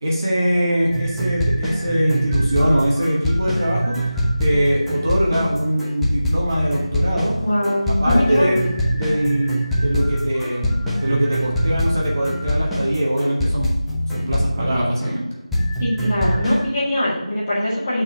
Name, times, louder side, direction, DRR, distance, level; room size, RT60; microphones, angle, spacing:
voice 1, 0.0-4.0 4.4-7.3 8.0-13.7 14.1-15.2, equal, 30° right, -4 dB, 1.3 m, -22 dB
sound 1, 0.9-15.1 15.5-16.6, equal, ahead, 0.4 m, -23 dB
voice 2, 7.4-8.6 15.8-18.0, left 1 dB, 20° left, -8 dB, 1.9 m, -21 dB
7.4 x 4.4 x 4.2 m, 0.99 s
figure-of-eight pair, 170°, 3 cm